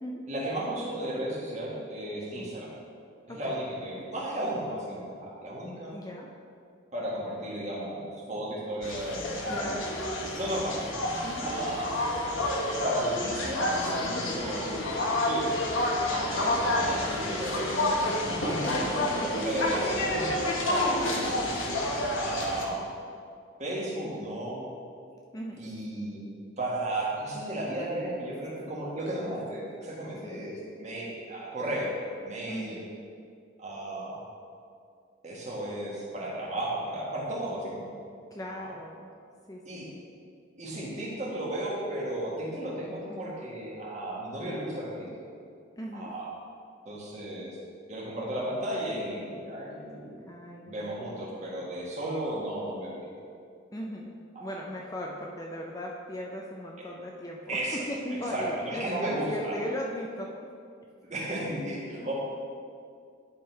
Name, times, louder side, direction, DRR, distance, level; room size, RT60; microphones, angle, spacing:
voice 1, 0.3-2.7 3.3-5.9 6.9-9.8 10.2-10.8 11.4-12.0 12.8-14.7 15.2-15.5 16.1-18.7 19.2-20.3 20.6-21.3 22.2-22.8 23.6-24.7 25.6-26.3 26.6-31.9 32.2-32.8 33.6-34.2 35.2-37.9 38.4-38.6 39.6-39.9 40.6-45.1 45.9-46.3 46.8-47.6 47.9-50.2 50.7-52.9 54.3-54.5 57.5-57.8 58.3-59.5 61.0-62.1, right 1 dB, 35° right, -5 dB, 1.5 m, -34 dB
voice 2, 3.3-3.6 5.9-6.3 9.5-10.0 11.2-11.5 14.4-14.7 16.4-17.2 18.6-19.3 20.9-21.5 25.3-25.6 30.2-30.5 32.5-32.9 38.3-39.1 39.5-40.0 43.1-43.3 45.8-46.1 50.2-51.0 53.7-57.6 57.9-60.4 62.0-62.1, equal, 15° left, -1 dB, 0.4 m, -38 dB
sound 1, 8.8-22.6, left 1 dB, 75° left, 1.1 m, -29 dB
10.5 x 3.8 x 4.5 m, 2.3 s
head